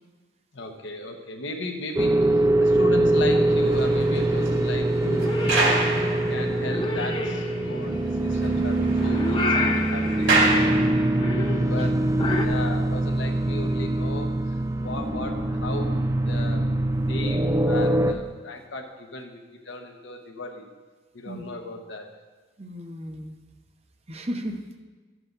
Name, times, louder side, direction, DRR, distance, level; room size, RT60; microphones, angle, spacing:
voice 1, 0.5-5.3 5.8-11.1 11.6-12.0 12.4-16.6 17.1-20.7 21.1-22.1, left 2 dB, 70° left, 3 dB, 1.1 m, -36 dB
sound 1, 2.0-18.1, right 1 dB, 15° right, 0.4 m, -23 dB
sound 2, 3.3-7.0 7.4-7.5 7.8-7.9 8.2-11.5 12.1-12.3, right 2 dB, 70° right, 2.4 m, -28 dB
Purr / Meow, 5.0-12.5, left 3 dB, 25° left, 0.6 m, -31 dB
voice 2, 22.6-23.4 24.1-24.8, equal, 30° right, 4 dB, 0.8 m, -35 dB
12.5 x 7.8 x 4.0 m, 1.3 s
head